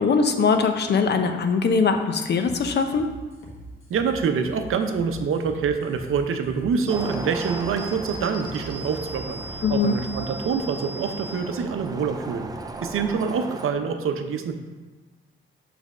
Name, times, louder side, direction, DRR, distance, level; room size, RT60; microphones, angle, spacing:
voice 1, 0.0-3.1 9.6-10.0, left 5 dB, 55° left, 7 dB, 0.6 m, -21 dB
sound 1, 2.4-10.2, right 1 dB, 75° left, 1.5 m, -43 dB
voice 2, 3.9-12.5 12.8-14.5, right 6 dB, 80° right, 7 dB, 0.6 m, -26 dB
Traffic noise roadway noise, 6.9-13.7, right 3 dB, 20° right, 0.4 m, -37 dB
sound 2, 6.9-13.3, right 2 dB, 60° right, 1.1 m, -40 dB
7.3 x 3.4 x 5.3 m, 1.3 s
wide cardioid pair, 150°, 21 cm